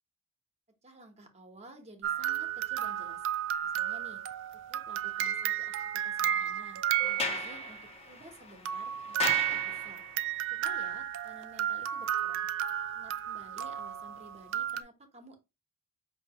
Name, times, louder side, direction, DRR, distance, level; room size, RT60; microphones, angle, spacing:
voice 1, 0.8-3.3 3.6-4.2 4.7-10.1 10.5-12.5 12.9-15.4, right 2 dB, 30° right, 0.9 m, -53 dB
sound 1, 2.0-7.8 8.6-14.8, right 11 dB, 60° right, 0.3 m, -33 dB
Sliding door, 7.0-10.3, left 4 dB, 30° left, 0.6 m, -37 dB
5.1 x 2.8 x 2.8 m
head